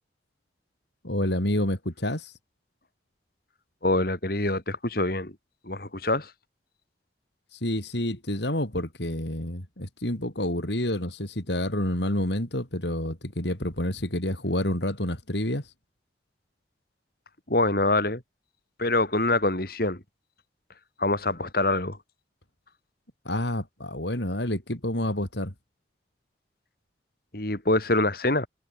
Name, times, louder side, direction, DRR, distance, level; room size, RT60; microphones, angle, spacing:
voice 1, 1.0-2.3 7.5-15.6 23.3-25.5, left 1 dB, 70° left, 5.3 m, -28 dB
voice 2, 3.8-5.3 5.6-6.3 17.5-18.2 18.8-20.0 21.0-22.0 27.3-28.5, left 2 dB, 55° left, 3.1 m, -25 dB
head